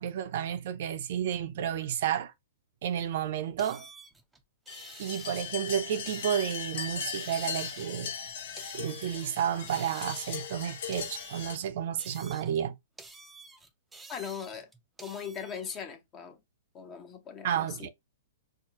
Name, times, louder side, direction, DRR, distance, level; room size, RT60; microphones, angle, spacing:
voice 1, 0.0-2.3 2.8-3.9 5.0-8.1 8.7-12.8 17.4-17.9, right 9 dB, 60° right, 0.4 m, -31 dB
sound 1, 3.6-5.7 6.0-6.8 7.1-9.4 9.7-10.6 10.9-12.7 13.0-15.8, right 3 dB, 5° right, 0.4 m, -50 dB
sound 2, 4.7-11.6, left 7 dB, 65° left, 0.6 m, -38 dB
voice 2, 14.1-14.7 15.0-16.4 16.7-17.9, left 7 dB, 25° left, 0.7 m, -39 dB
4.6 x 2.0 x 2.8 m
hypercardioid pair, 140°, 0 cm